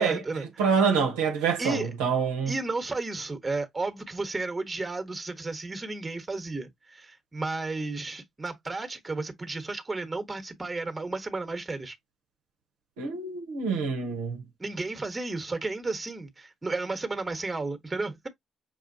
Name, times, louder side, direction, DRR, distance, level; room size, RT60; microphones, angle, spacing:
voice 1, 0.0-0.7 1.6-1.9 2.5-12.0 14.6-18.3, right 3 dB, 25° right, 1.1 m, -33 dB
voice 2, 0.6-2.5 13.0-14.4, right 6 dB, 80° right, 0.7 m, -26 dB
6.1 x 2.4 x 2.6 m
hypercardioid pair, 45°, 0 cm